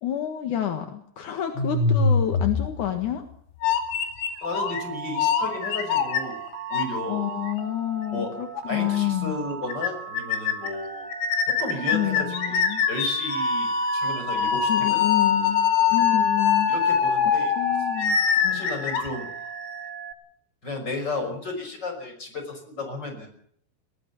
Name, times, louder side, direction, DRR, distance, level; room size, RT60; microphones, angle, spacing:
voice 1, 0.0-3.3 7.1-9.4 11.9-12.8 14.7-16.7 17.6-18.7, left 12 dB, 60° left, 6 dB, 2.2 m, -29 dB
sound 1, 1.6-3.1 3.6-4.8 5.1-7.0 7.5-7.6 8.6-8.7 8.9-9.0 9.3-9.4 9.7-9.9 10.1-10.7 11.1-19.8, left 6 dB, 90° left, 4.9 m, -23 dB
voice 2, 4.4-6.4 6.7-7.3 8.1-8.4 8.7-11.1 11.6-12.6 12.9-15.0 16.7-17.5 18.5-19.3 20.6-23.3, left 2 dB, 20° left, 5 dB, 6.1 m, -33 dB
Telephone, 4.4-20.1, right 8 dB, 80° right, 4.9 m, -38 dB
21.5 x 18.0 x 7.2 m, 0.65 s
omnidirectional pair, 5.7 m